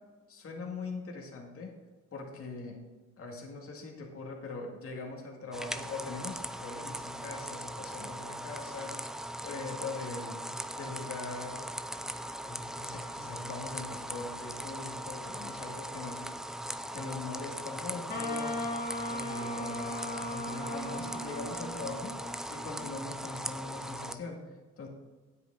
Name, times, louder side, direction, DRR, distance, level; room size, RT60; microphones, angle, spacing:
voice 1, 0.3-1.8 2.1-2.8 3.2-9.0 9.4-10.4 10.8-11.6 12.4-16.2 16.9-18.6 19.1-22.2 22.5-24.5 24.8-24.9, left 3 dB, 50° left, 0 dB, 2.1 m, -41 dB
sound 1, 5.5-24.1, right 1 dB, ahead, 0.5 m, -40 dB
Wind instrument woodwind instrument, 18.1-23.1, left 1 dB, 30° left, 2.1 m, -38 dB
9.3 x 8.1 x 3.9 m, 1.3 s
cardioid pair, 90°, 30 cm